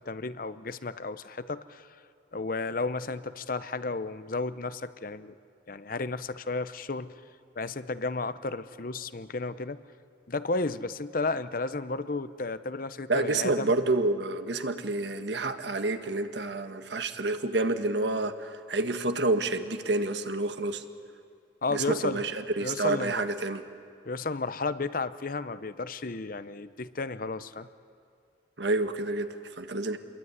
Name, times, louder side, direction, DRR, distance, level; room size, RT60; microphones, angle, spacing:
voice 1, 0.1-1.9 2.3-5.3 5.7-7.1 7.6-9.8 10.3-13.7 21.6-22.2 22.6-23.3 24.1-27.7, left 3 dB, 50° left, 13 dB, 0.8 m, -33 dB
voice 2, 13.1-20.8 21.7-23.6 28.6-30.0, right 2 dB, 70° right, 8 dB, 1.5 m, -29 dB
28.0 x 22.0 x 9.6 m, 2.3 s
head